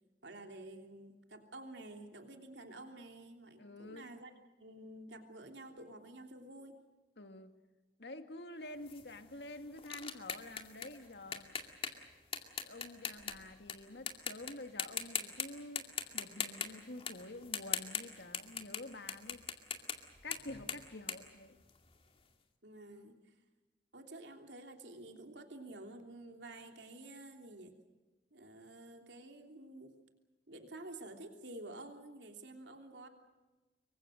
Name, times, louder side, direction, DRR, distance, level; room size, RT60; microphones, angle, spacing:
voice 1, 0.2-4.3 4.6-6.7 22.6-23.3 23.9-27.7 28.3-29.9 30.5-33.1, right 2 dB, 85° right, 3.2 m, -50 dB
voice 2, 3.6-4.1 7.2-7.5 8.0-11.5 12.6-15.9 16.1-19.4 20.2-21.6, left 2 dB, 70° left, 2.0 m, -48 dB
sound 1, 8.9-13.7 14.1-14.5 14.8-15.5 15.8-22.1, left 6 dB, 30° left, 2.3 m, -40 dB
26.5 x 23.5 x 6.5 m
head